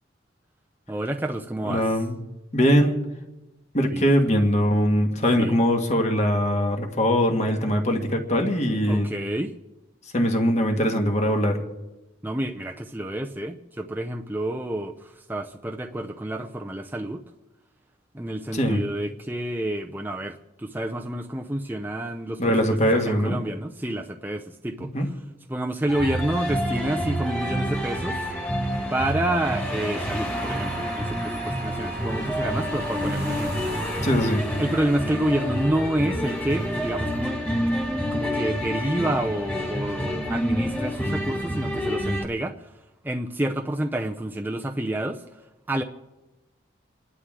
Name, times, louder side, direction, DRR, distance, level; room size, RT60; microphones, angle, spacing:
voice 1, 0.9-1.8 3.9-4.0 5.4-5.6 8.9-9.5 12.2-14.9 15.3-17.2 18.1-22.5 22.9-24.9 25.5-28.2 28.9-33.7 34.6-37.4 38.1-42.5 43.0-45.2 45.7-45.8, right 1 dB, 10° right, 3 dB, 0.6 m, -28 dB
voice 2, 1.6-2.2 2.5-3.0 3.7-9.1 10.1-11.6 18.5-18.8 22.4-23.4 24.8-25.1 34.0-34.4, equal, 35° left, 3 dB, 1.7 m, -22 dB
sound 1, 25.9-42.2, equal, 10° left, 2.0 m, -28 dB
Wind instrument woodwind instrument, 30.3-34.5, right 3 dB, 65° left, 1.2 m, -39 dB
29.0 x 11.5 x 3.7 m, 1.0 s
head